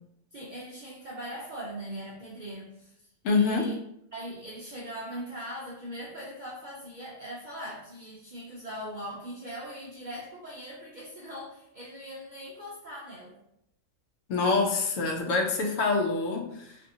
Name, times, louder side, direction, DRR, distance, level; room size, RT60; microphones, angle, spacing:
voice 1, 0.3-3.0 3.3-3.8 4.1-13.4 15.1-15.3, equal, 65° right, -4 dB, 0.4 m, -40 dB
voice 2, 3.2-3.7 14.3-16.8, left 3 dB, 80° left, 2 dB, 1.0 m, -26 dB
2.6 x 2.5 x 2.6 m, 0.76 s
omnidirectional pair, 1.3 m